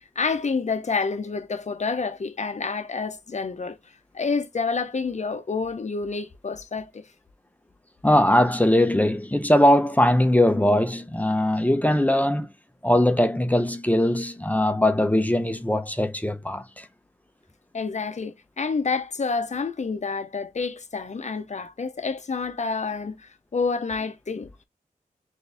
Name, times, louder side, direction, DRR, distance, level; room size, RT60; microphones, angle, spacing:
voice 1, 0.2-3.8 4.1-7.0 17.7-23.2 23.5-24.5, left 4 dB, 50° left, 0.7 m, -28 dB
voice 2, 8.0-12.5 12.8-16.9, left 1 dB, 10° left, 0.7 m, -20 dB
4.1 x 2.7 x 3.4 m
wide cardioid pair, 65°, 15 cm